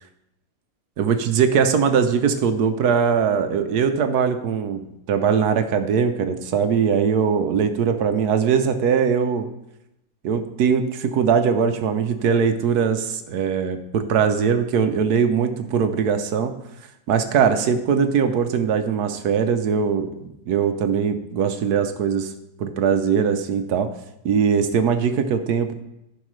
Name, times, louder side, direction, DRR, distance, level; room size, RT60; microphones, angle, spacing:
voice 1, 1.0-4.8 5.1-9.5 10.2-16.5 17.1-22.3 22.6-23.9 24.2-25.7, right 6 dB, 70° right, 7 dB, 1.2 m, -21 dB
14.5 x 5.4 x 3.2 m, 0.86 s
omnidirectional pair, 1.8 m